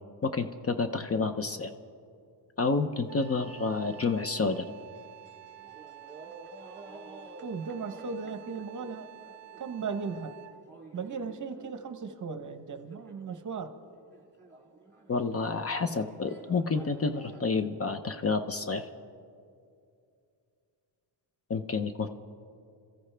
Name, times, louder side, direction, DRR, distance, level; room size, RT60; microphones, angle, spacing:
voice 1, 0.2-1.7 2.6-4.7 15.1-18.9 21.5-22.1, left 4 dB, 35° left, 8 dB, 0.6 m, -29 dB
Wind instrument woodwind instrument, 3.1-10.7, right 14 dB, 75° right, 0.6 m, -50 dB
sound 1, 3.7-12.1 12.6-13.6 13.9-17.7, right 3 dB, 25° right, 2.0 m, -52 dB
voice 2, 7.4-9.1 9.6-10.3 10.9-13.7, right 5 dB, 40° right, 8 dB, 0.9 m, -36 dB
27.0 x 14.5 x 3.3 m, 2.4 s
wide cardioid pair, 145°, 44 cm